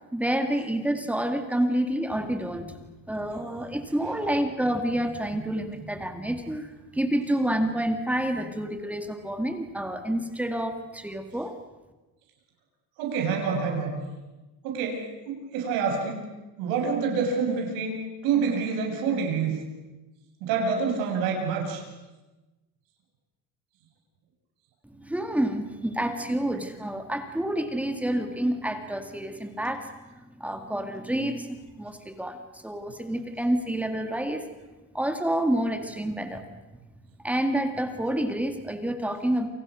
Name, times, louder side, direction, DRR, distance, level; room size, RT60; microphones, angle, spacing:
voice 1, 0.1-2.8 3.1-11.5 25.0-29.9 30.4-34.5 34.9-36.5 37.2-39.5, right 1 dB, 5° right, 6 dB, 2.0 m, -28 dB
voice 2, 13.0-14.0 14.6-16.3 16.6-18.0 18.2-19.6 20.4-21.8, right 5 dB, 80° right, 2 dB, 7.1 m, -27 dB
28.5 x 27.5 x 6.3 m, 1.1 s
cardioid pair, 165°, 34 cm